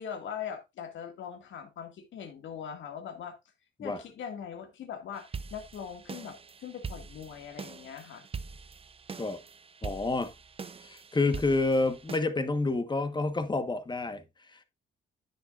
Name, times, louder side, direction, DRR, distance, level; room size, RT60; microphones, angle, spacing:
voice 1, 0.0-3.4 3.8-8.3, left 8 dB, 70° left, 2.1 m, -41 dB
sound 1, 5.2-12.2, right 5 dB, 30° right, 0.6 m, -43 dB
voice 2, 9.8-10.3 10.8-14.6, left 3 dB, 20° left, 1.3 m, -29 dB
9.7 x 7.4 x 2.5 m
cardioid pair, 90°, 20 cm